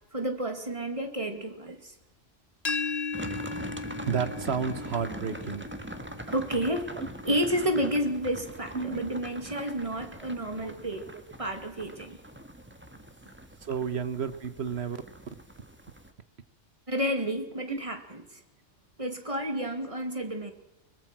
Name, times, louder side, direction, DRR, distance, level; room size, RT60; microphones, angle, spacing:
voice 1, 0.1-1.9 6.3-6.9 7.2-11.1 11.4-12.2 16.9-18.4 19.0-20.5, equal, 25° right, 6 dB, 2.4 m, -30 dB
sound 1, 2.6-8.4, left 4 dB, 35° left, 1.0 m, -38 dB
sound 2, 3.1-16.1, right 1 dB, 10° right, 1.7 m, -43 dB
voice 2, 4.1-5.7 7.0-7.1 8.7-9.2 10.6-10.7 13.6-15.0 17.7-17.8, right 6 dB, 60° right, 12 dB, 1.4 m, -31 dB
22.5 x 21.5 x 6.1 m, 0.99 s
omnidirectional pair, 1.2 m